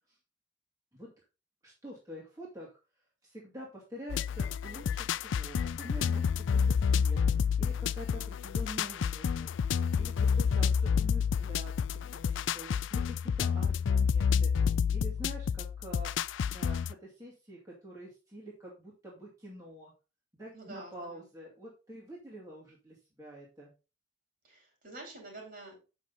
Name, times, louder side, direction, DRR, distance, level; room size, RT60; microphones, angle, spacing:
voice 1, 1.6-2.7 3.2-19.9 20.3-23.7, right 1 dB, 15° right, -5 dB, 2.4 m, -47 dB
sound 1, 4.1-16.9, left 6 dB, 75° left, 0.3 m, -29 dB
voice 2, 20.5-21.3 24.4-25.8, right 2 dB, 45° right, 1 dB, 4.9 m, -48 dB
8.2 x 6.4 x 4.0 m, 0.30 s
head